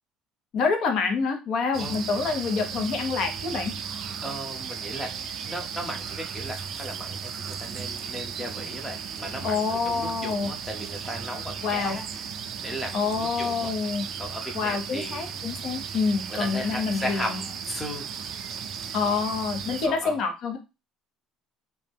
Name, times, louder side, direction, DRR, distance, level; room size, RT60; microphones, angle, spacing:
voice 1, 0.5-3.7 9.4-10.5 11.6-12.0 12.9-14.1 14.5-17.4 18.9-20.6, left 5 dB, 55° left, 4 dB, 0.7 m, -27 dB
sound 1, 1.7-19.9, right 7 dB, 45° right, 0.4 m, -36 dB
voice 2, 4.2-5.1 5.4-12.3 12.6-13.7 14.2-15.3 16.4-18.0 19.1-19.2 19.8-20.2, equal, 10° left, 2 dB, 0.7 m, -36 dB
2.7 x 2.2 x 3.4 m, 0.27 s
cardioid pair, 150°, 0 cm